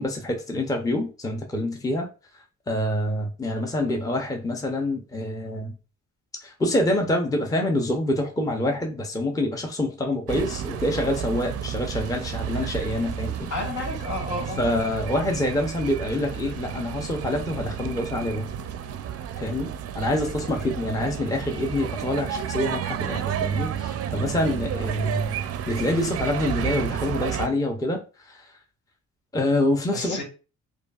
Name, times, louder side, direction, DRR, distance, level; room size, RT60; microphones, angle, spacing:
voice 1, 0.0-2.1 2.7-5.7 6.4-13.5 14.6-18.5 19.4-25.4 25.7-28.0 28.3-28.4 29.3-30.2, left 1 dB, 10° left, 0.6 m, -26 dB
sound 1, 10.3-27.5, right 9 dB, 50° right, 0.5 m, -31 dB
voice 2, 13.5-14.6 20.5-20.8 29.9-30.2, left 2 dB, 70° left, 1.8 m, -32 dB
4.9 x 2.3 x 2.4 m
cardioid pair, 90°, 30 cm